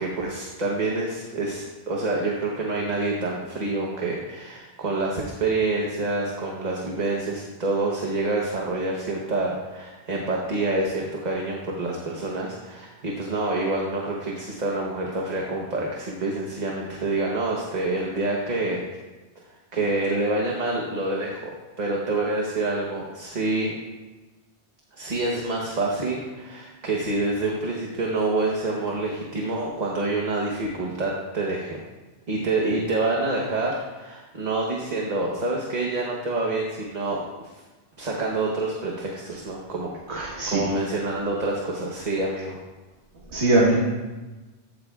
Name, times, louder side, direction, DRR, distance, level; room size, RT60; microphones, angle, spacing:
voice 1, 0.0-18.8 19.7-23.7 24.9-31.8 32.3-37.5 38.0-42.6, right 2 dB, 40° right, -1 dB, 1.1 m, -27 dB
voice 2, 40.1-40.6 43.3-43.7, right 2 dB, 70° right, -4 dB, 1.7 m, -21 dB
14.5 x 8.9 x 2.4 m, 1.2 s
omnidirectional pair, 1.2 m